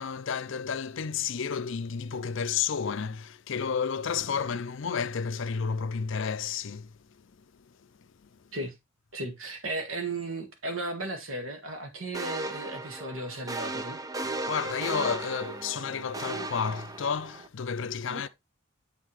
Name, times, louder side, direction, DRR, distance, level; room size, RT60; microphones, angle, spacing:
voice 1, 0.0-6.9 7.2-7.3 7.6-7.7 8.2-8.3 14.2-18.3, left 6 dB, 60° left, 0.5 m, -31 dB
voice 2, 9.1-14.0 18.1-18.3, right 2 dB, 70° right, 1.8 m, -35 dB
sound 1, 12.1-17.5, right 3 dB, 15° right, 0.5 m, -36 dB
8.2 x 5.6 x 3.2 m
head